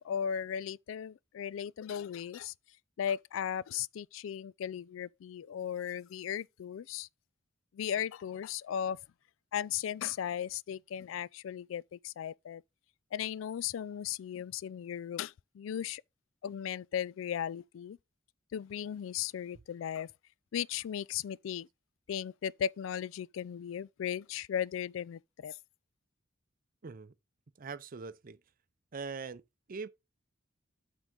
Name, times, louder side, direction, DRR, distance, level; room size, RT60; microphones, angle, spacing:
voice 1, 0.0-2.5 3.0-7.1 7.7-9.0 9.5-12.6 13.1-16.0 16.4-18.0 18.5-20.1 20.5-21.7 22.1-25.5, left 9 dB, 75° left, 0.3 m, -36 dB
voice 2, 26.8-27.1 27.6-28.4 28.9-29.4 29.7-29.9, right 4 dB, 45° right, 0.6 m, -42 dB
8.1 x 3.7 x 6.2 m
head